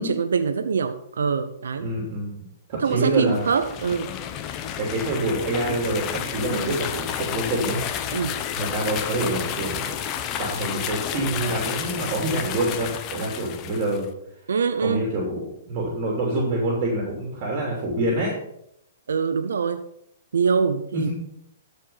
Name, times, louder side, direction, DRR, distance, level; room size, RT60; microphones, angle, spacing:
voice 1, 0.0-1.9 2.7-4.1 6.5-6.8 8.1-8.4 14.5-15.1 19.1-19.8 20.3-21.1, right 6 dB, 85° right, 9 dB, 0.7 m, -24 dB
voice 2, 1.8-2.4 2.7-3.4 4.8-7.8 8.5-10.0 10.4-14.1 14.8-18.3 20.9-21.1, right 1 dB, 40° right, -1 dB, 3.0 m, -26 dB
sound 1, 3.2-14.1, left 9 dB, 30° left, 0.8 m, -31 dB
13.5 x 5.2 x 5.6 m, 0.76 s
hypercardioid pair, 145°, 0 cm